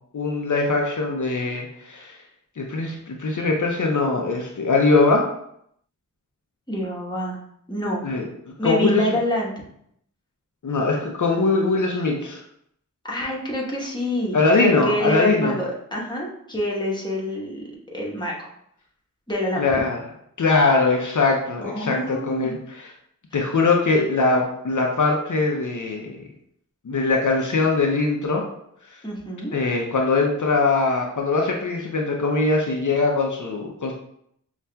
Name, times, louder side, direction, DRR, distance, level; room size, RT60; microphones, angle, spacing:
voice 1, 0.1-2.2 2.6-5.2 8.0-8.3 8.6-9.1 10.6-12.4 14.3-15.5 19.6-20.0 20.4-22.6 23.3-26.2 26.8-28.4 29.5-33.9, left 3 dB, 65° left, 0 dB, 0.5 m, -21 dB
voice 2, 6.7-7.4 7.7-8.0 8.6-9.5 13.0-18.5 19.3-19.8 21.6-22.5 29.0-29.5, equal, 15° left, -4 dB, 1.0 m, -26 dB
5.4 x 2.4 x 2.2 m, 0.72 s
wide cardioid pair, 45°, 32 cm